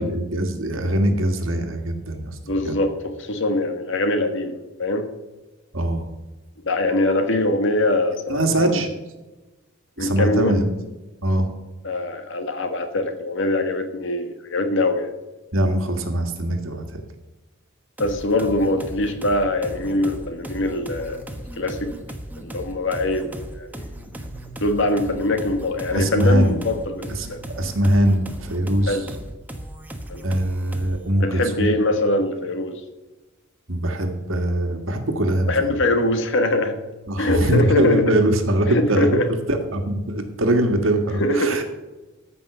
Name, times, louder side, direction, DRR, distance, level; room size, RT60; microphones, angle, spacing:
voice 1, 0.0-2.4 2.6-2.8 5.7-6.0 8.3-8.9 10.0-10.7 11.2-11.5 15.5-16.8 25.9-26.6 27.1-27.3 27.6-29.0 30.2-31.7 33.7-35.7 37.1-39.1 39.5-41.6, right 1 dB, 70° right, 6 dB, 1.7 m, -22 dB
voice 2, 2.5-5.1 6.6-8.8 10.0-10.6 11.8-15.1 18.0-21.2 21.6-21.9 22.4-23.9 24.6-27.4 28.9-29.1 30.1-30.2 31.2-32.8 35.5-36.8 37.2-38.1 38.7-39.3 41.2-41.6, left 1 dB, 65° left, 7 dB, 1.5 m, -23 dB
sound 1, 18.0-31.1, right 1 dB, 10° right, 1.1 m, -36 dB
14.0 x 5.8 x 6.8 m, 1.1 s
head